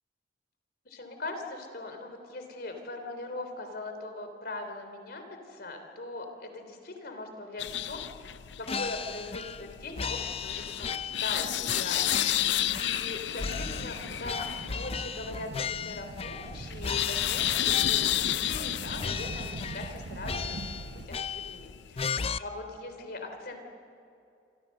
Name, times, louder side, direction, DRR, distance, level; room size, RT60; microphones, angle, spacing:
voice 1, 0.9-8.3 8.6-12.5 12.8-23.6, left 2 dB, 65° left, 5 dB, 3.5 m, -41 dB
sound 1, 7.6-22.1, left 12 dB, 85° left, 0.5 m, -32 dB
sound 2, 8.7-9.7 10.0-11.3 11.7-13.1 13.4-16.6 16.8-18.2 18.5-18.7 19.0-20.0 20.2-21.6 22.0-22.4, left 6 dB, 35° left, 0.5 m, -36 dB
sound 3, 13.4-21.1, right 3 dB, 70° right, 0.7 m, -42 dB
27.0 x 25.0 x 6.6 m, 2.6 s
head